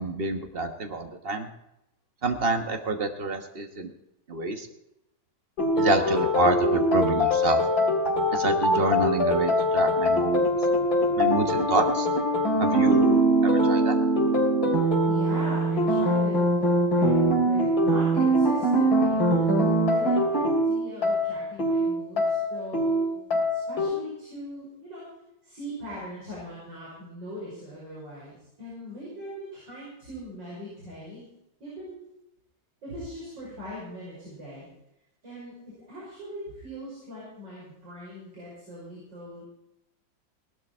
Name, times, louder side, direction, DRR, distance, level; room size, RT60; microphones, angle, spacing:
voice 1, 0.0-1.5 2.2-3.9 4.3-4.7 5.8-7.6 8.3-10.5 11.2-12.1 12.6-14.0, right 2 dB, 35° right, 6 dB, 1.2 m, -27 dB
sound 1, 5.6-23.9, equal, 50° left, 3.7 m, -23 dB
voice 2, 15.1-19.2 19.9-23.2 23.5-25.1 25.4-31.2 31.6-32.2 32.8-34.7 35.2-39.5, equal, 65° right, -6 dB, 6.4 m, -40 dB
18.0 x 12.0 x 4.4 m, 0.86 s
omnidirectional pair, 2.1 m